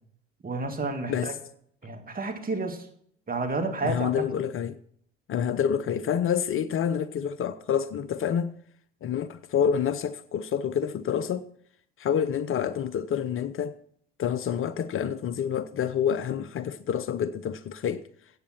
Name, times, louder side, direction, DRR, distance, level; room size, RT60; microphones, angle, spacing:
voice 1, 0.4-1.4 1.8-2.9 3.3-4.2, right 3 dB, 30° right, 2.5 m, -30 dB
voice 2, 3.8-4.8 5.3-8.5 9.0-11.5 12.0-13.7 14.2-18.0, left 8 dB, 45° left, 0.7 m, -28 dB
14.5 x 8.5 x 4.6 m
hypercardioid pair, 65°, 30 cm